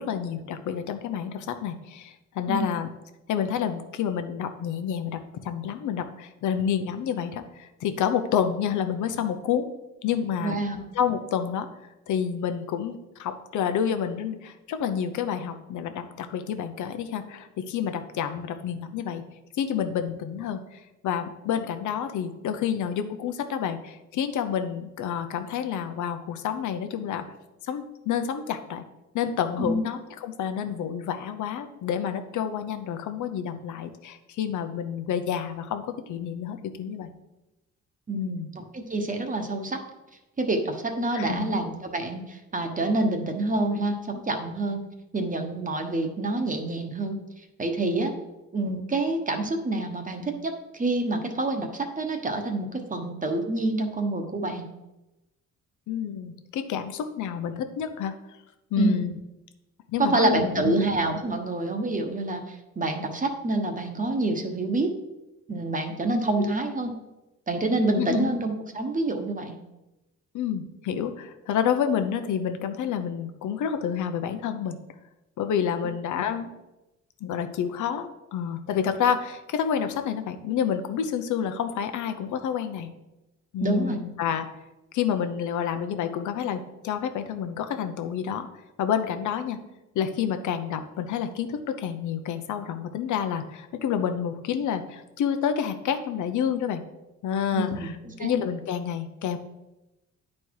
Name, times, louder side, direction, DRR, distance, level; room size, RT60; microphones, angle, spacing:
voice 1, 0.0-2.9 3.3-9.7 10.0-10.6 10.9-11.7 12.1-19.2 19.6-27.2 27.6-28.8 29.1-37.1 38.1-38.5 41.1-41.5 55.9-58.1 58.7-59.2 59.9-60.8 66.4-66.5 67.9-68.3 70.3-74.8 75.4-76.5 77.2-82.9 83.5-84.5 84.9-88.5 88.8-89.6 89.9-96.8 97.2-97.9 98.2-99.4, left 8 dB, 75° left, 8 dB, 0.8 m, -29 dB
voice 2, 10.4-10.8 29.6-29.8 38.1-39.8 40.4-44.8 45.1-47.2 47.6-48.1 48.5-54.7 58.8-59.1 60.0-64.9 65.5-66.9 67.5-69.5 83.6-84.0 97.5-98.3, right 2 dB, 25° right, 4 dB, 1.1 m, -27 dB
9.6 x 4.3 x 4.7 m, 0.99 s
cardioid pair, 90°, 30 cm